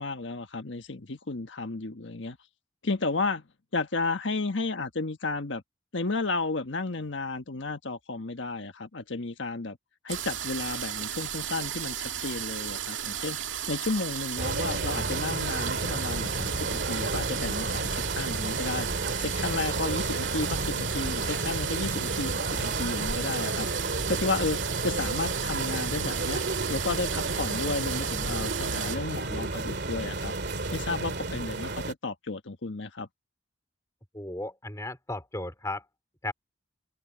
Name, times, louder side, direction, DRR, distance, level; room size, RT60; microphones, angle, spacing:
voice 1, 0.0-2.4 2.8-3.4 3.7-5.6 5.9-9.8 10.0-18.9 19.2-26.4 26.7-30.3 30.7-33.1, left 3 dB, 75° left, 1.4 m, -33 dB
sound 1, 10.1-29.0, right 9 dB, 85° right, 2.2 m, -34 dB
sound 2, 14.4-31.9, right 2 dB, 60° right, 2.4 m, -32 dB
voice 2, 34.1-35.8 36.2-36.3, left 2 dB, 15° left, 4.4 m, -35 dB
open air
head